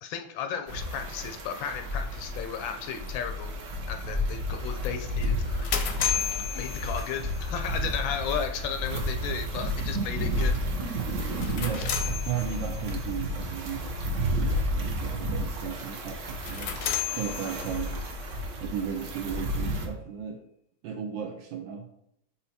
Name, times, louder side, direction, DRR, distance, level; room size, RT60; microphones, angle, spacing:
voice 1, 0.0-3.5 3.9-5.8 6.5-10.6, left 7 dB, 80° left, 7 dB, 1.3 m, -34 dB
sound 1, 0.7-19.9, equal, 50° right, 1.0 m, -31 dB
sound 2, 5.2-7.5 11.2-12.9 16.3-18.1, left 8 dB, 65° left, 1.0 m, -33 dB
voice 2, 11.5-14.4 14.7-16.7 17.1-18.0 18.6-20.4 20.8-21.9, right 8 dB, 75° right, 4 dB, 1.3 m, -35 dB
5.6 x 4.1 x 4.1 m, 0.75 s
omnidirectional pair, 2.1 m